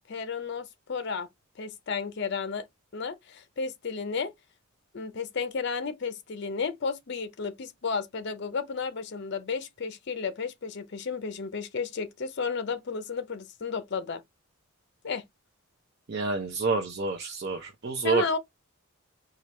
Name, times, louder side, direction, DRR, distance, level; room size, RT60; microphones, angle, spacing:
voice 1, 0.1-1.3 1.6-2.7 2.9-4.3 4.9-14.2 15.0-15.2 18.0-18.4, left 5 dB, 55° left, 0.5 m, -33 dB
voice 2, 16.1-18.2, right 4 dB, 50° right, 0.6 m, -28 dB
4.4 x 2.4 x 3.1 m
head